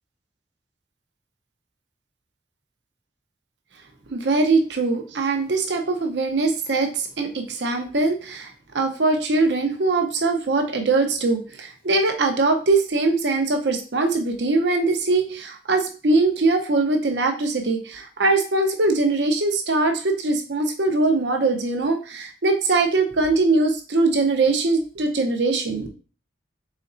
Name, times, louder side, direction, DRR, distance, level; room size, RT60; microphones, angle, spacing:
voice 1, 4.1-25.9, right 3 dB, 80° right, 4 dB, 0.8 m, -22 dB
4.1 x 4.0 x 2.6 m, 0.37 s
head